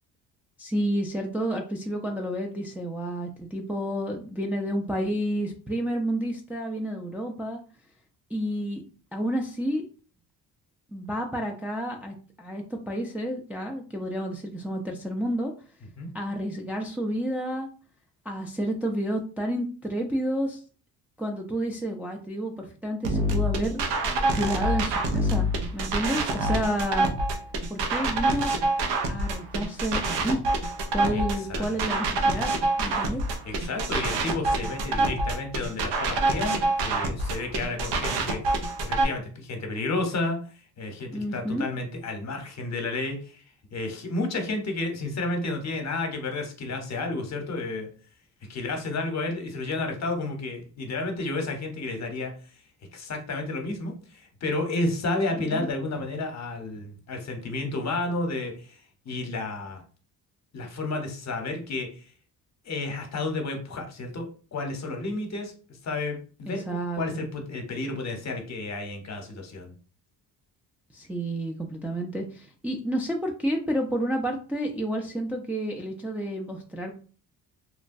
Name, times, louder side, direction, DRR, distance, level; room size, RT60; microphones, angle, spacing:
voice 1, 0.6-7.6 8.3-8.8 9.1-9.8 10.9-15.5 16.1-17.7 18.3-20.6 21.2-27.1 27.7-28.5 29.1-30.4 30.9-32.5 32.8-33.2 41.1-41.7 55.5-55.7 66.5-67.0 70.9-77.0, equal, 5° right, 1 dB, 0.4 m, -30 dB
sound 1, 23.0-39.0, right 2 dB, 85° right, 0.7 m, -26 dB
voice 2, 31.1-31.8 33.0-33.1 33.4-47.9 48.5-52.6 52.9-59.8 60.5-62.1 62.6-69.7, left 2 dB, 45° left, 4 dB, 0.8 m, -32 dB
3.0 x 2.2 x 2.5 m, 0.38 s
cardioid pair, 85°, 39 cm